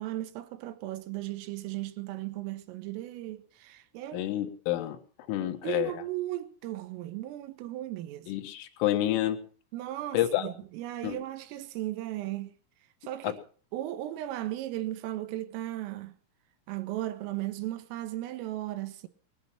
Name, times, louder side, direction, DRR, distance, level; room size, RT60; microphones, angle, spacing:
voice 1, 0.0-4.3 5.4-8.3 9.7-12.5 13.0-13.4 13.7-16.1 16.7-19.1, right 15 dB, 85° right, 3.7 m, -36 dB
voice 2, 4.1-5.0 5.3-5.9 8.3-9.4 10.1-10.5 11.0-11.2 13.2-13.3, left 13 dB, 75° left, 4.1 m, -28 dB
20.5 x 12.0 x 5.9 m
omnidirectional pair, 5.9 m